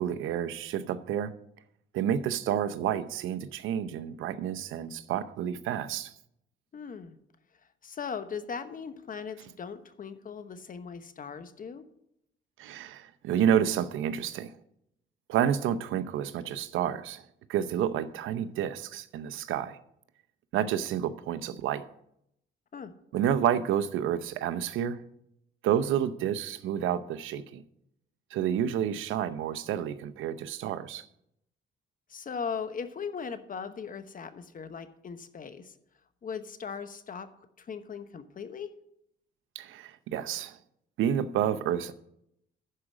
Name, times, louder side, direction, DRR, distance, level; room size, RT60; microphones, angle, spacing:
voice 1, 0.0-1.3 1.9-6.1 12.6-14.5 15.3-17.2 17.5-19.8 20.5-21.9 23.1-25.0 25.6-27.6 28.3-31.1 39.5-40.6 41.0-41.9, right 9 dB, 85° right, 0.7 m, -29 dB
voice 2, 6.7-7.2 7.8-11.8 22.7-22.9 32.1-35.7 36.2-37.3 37.6-38.7, left 6 dB, 45° left, 1.0 m, -38 dB
11.0 x 5.0 x 7.3 m
cardioid pair, 90°, 20 cm